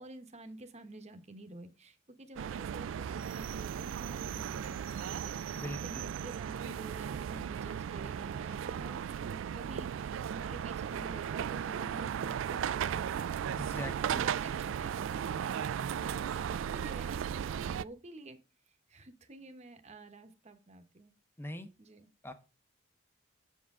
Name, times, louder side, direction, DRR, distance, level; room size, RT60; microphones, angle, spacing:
voice 1, 0.0-18.4 18.9-21.1 21.8-22.1, right 2 dB, 35° right, 7 dB, 1.0 m, -50 dB
sound 1, 2.4-17.8, right 8 dB, 80° right, 0.3 m, -36 dB
voice 2, 5.5-6.1 13.6-14.2 21.4-21.7 22.2-22.3, left 1 dB, 10° left, 9 dB, 0.9 m, -42 dB
7.5 x 6.9 x 3.6 m, 0.32 s
head